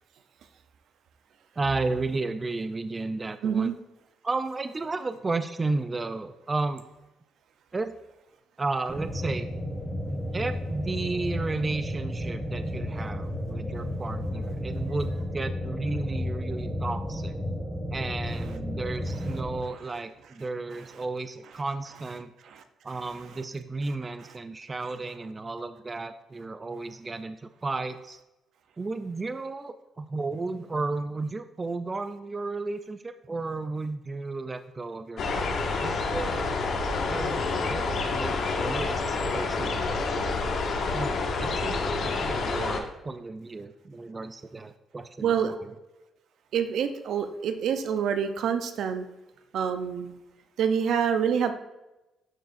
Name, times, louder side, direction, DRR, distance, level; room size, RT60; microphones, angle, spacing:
voice 1, 1.6-3.8 4.2-6.8 7.7-8.0 8.6-9.5 10.3-17.4 17.9-22.3 22.8-28.2 28.8-36.5 37.1-40.3 40.9-45.5, right 3 dB, 25° right, 10 dB, 0.4 m, -33 dB
voice 2, 3.4-3.7 22.4-22.6 45.2-45.5 46.5-49.1 49.5-50.1 50.6-51.5, right 7 dB, 75° right, 8 dB, 0.6 m, -26 dB
sound 1, 8.9-19.6, left 1 dB, ahead, 0.9 m, -32 dB
sound 2, 35.2-42.8, left 3 dB, 65° left, 1.0 m, -28 dB
12.0 x 4.6 x 2.5 m, 0.99 s
cardioid pair, 90°, 0 cm